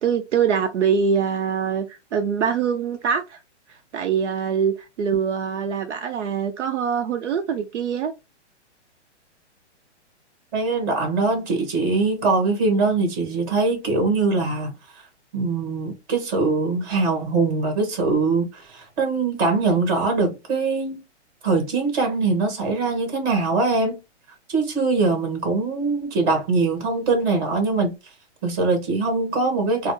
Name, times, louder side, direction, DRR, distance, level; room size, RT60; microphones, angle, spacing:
voice 1, 0.0-3.4 3.9-8.1, right 7 dB, 70° right, 0.6 m, -23 dB
voice 2, 10.5-14.7 15.3-21.0 21.4-24.0 24.5-27.9 28.4-29.9, right 3 dB, 35° right, 1.5 m, -22 dB
4.1 x 2.0 x 3.1 m
hypercardioid pair, 135°, 36 cm